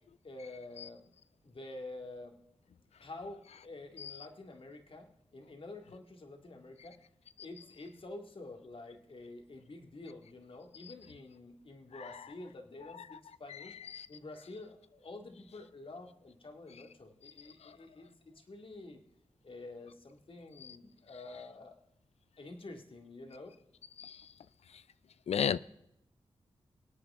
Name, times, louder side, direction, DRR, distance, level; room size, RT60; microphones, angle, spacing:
voice 1, 0.2-1.1 1.4-2.4 3.0-7.0 7.4-13.8 14.1-19.0 19.4-21.8 22.4-23.5, left 2 dB, 55° left, 2.1 m, -48 dB
voice 2, 25.3-25.6, left 8 dB, 75° left, 0.4 m, -31 dB
23.5 x 8.5 x 3.6 m
cardioid pair, 50°, 11 cm